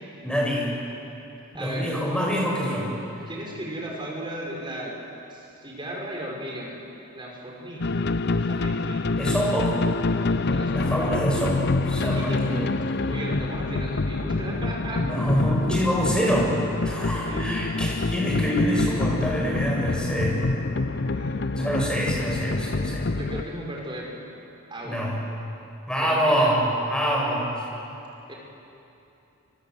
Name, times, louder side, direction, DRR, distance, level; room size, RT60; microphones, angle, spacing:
voice 1, 0.2-0.7 1.5-2.9 9.2-9.8 10.7-12.7 15.0-16.6 16.8-20.4 21.5-23.1 24.8-25.2 25.9-27.6, equal, 5° left, -3 dB, 6.5 m, -25 dB
voice 2, 1.5-1.9 3.3-5.0 5.3-6.9 7.1-8.2 8.5-9.2 10.5-11.1 12.0-12.7 13.1-15.0 15.8-16.0 16.8-17.7 21.1-21.6 23.1-24.3 24.7-25.1 26.0-26.6 28.3-28.4, right 1 dB, 20° right, -2 dB, 5.3 m, -36 dB
sound 1, 7.8-23.4, left 3 dB, 50° left, 0.7 m, -26 dB
30.0 x 24.0 x 8.0 m, 2.9 s
head